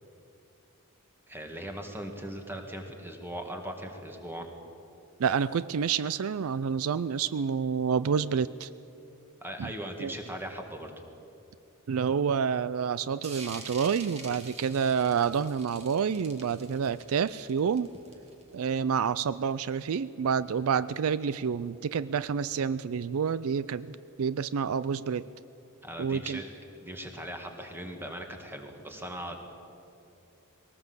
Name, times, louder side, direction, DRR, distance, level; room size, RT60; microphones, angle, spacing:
voice 1, 1.3-4.5 9.4-10.9 25.8-26.5 26.7-29.4, right 1 dB, 10° right, 4 dB, 2.0 m, -39 dB
voice 2, 5.2-8.7 9.6-9.7 10.0-10.1 11.9-17.9 18.5-25.3 26.0-26.4, right 6 dB, 65° right, 17 dB, 0.4 m, -28 dB
sound 1, 13.2-18.5, right 3 dB, 30° right, 2.3 m, -46 dB
20.5 x 18.5 x 8.0 m, 2.7 s
head